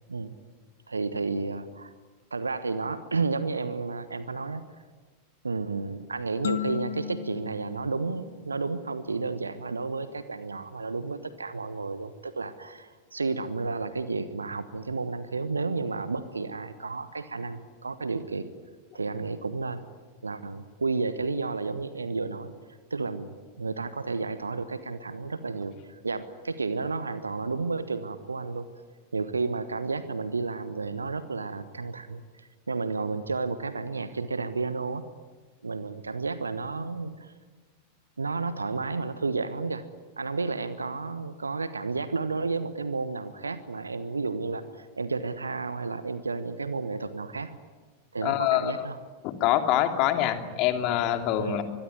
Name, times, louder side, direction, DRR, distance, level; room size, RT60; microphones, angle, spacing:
voice 1, 0.9-1.9 2.3-4.6 5.4-18.5 18.9-19.8 20.2-22.5 22.9-28.7 29.1-35.1 35.6-37.3 38.2-39.8 40.2-47.5 48.1-49.0 51.4-51.6, right 4 dB, 75° right, 13 dB, 1.1 m, -32 dB
sound 1, 6.4-9.1, left 10 dB, 60° left, 0.9 m, -36 dB
voice 2, 48.2-48.8 49.2-51.6, left 12 dB, 40° left, 6 dB, 2.9 m, -25 dB
25.0 x 22.5 x 9.6 m, 1.4 s
figure-of-eight pair, 90°, 0 cm